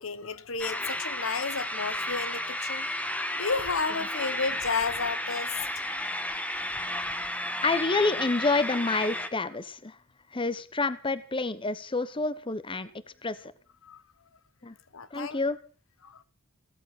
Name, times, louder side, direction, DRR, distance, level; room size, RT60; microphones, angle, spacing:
voice 1, 0.0-2.9 3.3-5.8 13.8-14.0 14.9-15.4 16.0-16.2, left 4 dB, 75° left, 1.1 m, -32 dB
sound 1, 0.6-9.3, left 1 dB, 5° left, 1.4 m, -33 dB
voice 2, 7.6-9.9 10.3-12.9 13.2-13.5 14.6-14.7 15.1-15.6, left 3 dB, 25° left, 0.9 m, -28 dB
16.5 x 13.5 x 6.0 m
head